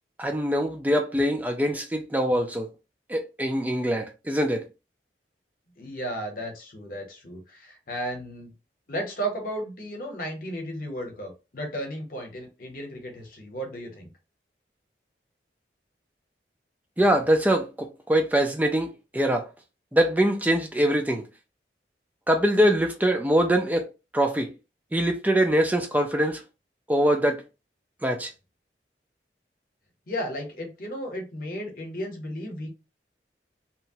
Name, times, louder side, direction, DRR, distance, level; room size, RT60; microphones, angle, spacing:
voice 1, 0.2-2.7 3.1-4.7 17.0-19.5 19.9-21.2 22.3-23.9 24.1-24.5 24.9-26.4 26.9-27.4 28.0-28.3, right 1 dB, 10° right, 0.4 m, -23 dB
voice 2, 5.8-8.5 8.9-14.1 30.1-32.7, equal, 50° left, 1.0 m, -34 dB
2.9 x 2.2 x 2.7 m
head